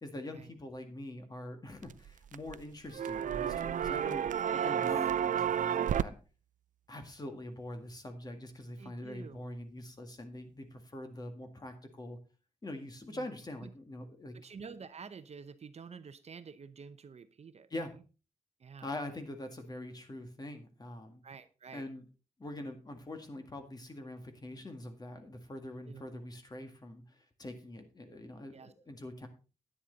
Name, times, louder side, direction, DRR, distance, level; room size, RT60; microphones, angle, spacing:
voice 1, 0.0-4.3 4.5-6.2 6.9-12.2 12.6-14.3 17.7-18.0 18.8-21.2 21.7-22.1 22.4-29.3, left 1 dB, 30° left, 6 dB, 1.9 m, -44 dB
sound 1, 1.8-2.6 2.9-6.0, right 9 dB, 80° right, 0.4 m, -31 dB
voice 2, 4.5-4.9 8.8-9.4 13.1-13.2 13.6-13.7 14.3-17.7 18.6-18.9 21.2-21.8 25.9-26.0 28.5-28.7, right 5 dB, 55° right, 12 dB, 0.8 m, -49 dB
10.0 x 10.0 x 4.0 m, 0.33 s
wide cardioid pair, 140°, 13 cm